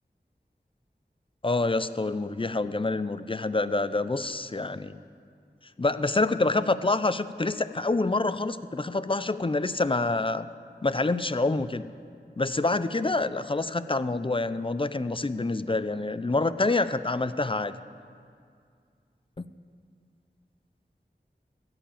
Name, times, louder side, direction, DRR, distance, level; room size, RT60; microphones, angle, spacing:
voice 1, 1.4-5.0 5.8-10.5 10.8-11.9 12.4-17.7, left 3 dB, 30° left, 14 dB, 0.5 m, -27 dB
13.5 x 7.8 x 8.6 m, 2.3 s
wide cardioid pair, 55°, 18 cm